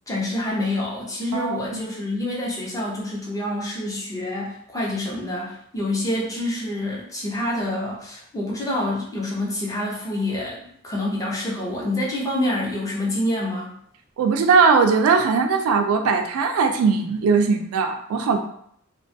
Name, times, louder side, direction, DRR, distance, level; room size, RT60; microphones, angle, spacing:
voice 1, 0.1-13.7, left 1 dB, 15° left, -4 dB, 0.6 m, -27 dB
voice 2, 1.3-1.8 14.2-18.4, right 5 dB, 75° right, 10 dB, 0.3 m, -19 dB
2.5 x 2.3 x 2.5 m, 0.69 s
head